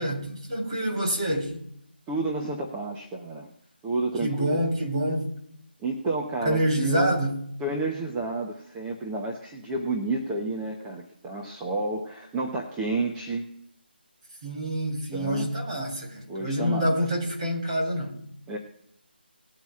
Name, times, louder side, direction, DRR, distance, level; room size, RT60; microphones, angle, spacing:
voice 1, 0.0-1.6 4.2-5.3 6.4-7.4 14.4-18.2, equal, 30° right, 3.2 m, -27 dB
voice 2, 2.1-3.5 3.8-4.6 5.8-7.2 7.6-13.5 15.1-15.5 16.3-16.9 18.5-18.6, right 2 dB, 5° right, 0.7 m, -30 dB
20.0 x 8.8 x 2.4 m
figure-of-eight pair, 170°, 6 cm